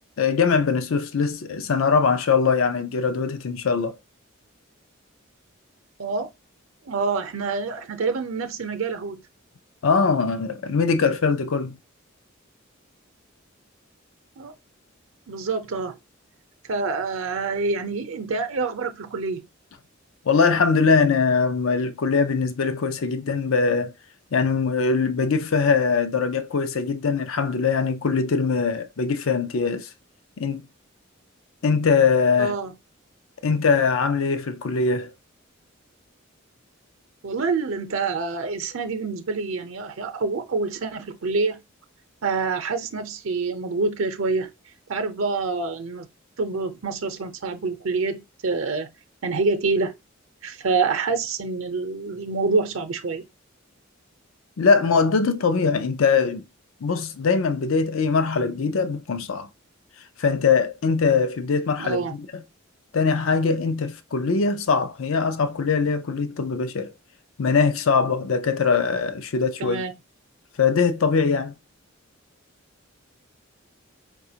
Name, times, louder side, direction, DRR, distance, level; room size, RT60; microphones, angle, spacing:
voice 1, 0.2-4.0 9.8-11.7 20.3-23.9 24.3-29.9 30.4-30.6 31.6-32.5 33.4-35.1 54.6-56.4 56.8-59.5 60.2-62.4 62.9-66.9 67.4-69.8 70.6-71.5, left 5 dB, 80° left, 0.5 m, -22 dB
voice 2, 6.9-9.2 14.4-14.5 15.3-16.0 16.7-19.4 32.4-32.7 37.2-41.6 42.2-44.5 44.9-46.1 46.4-48.9 49.2-49.9 50.4-53.2 61.8-62.1 69.6-69.9, right 4 dB, 75° right, 0.6 m, -26 dB
4.8 x 2.4 x 2.8 m
head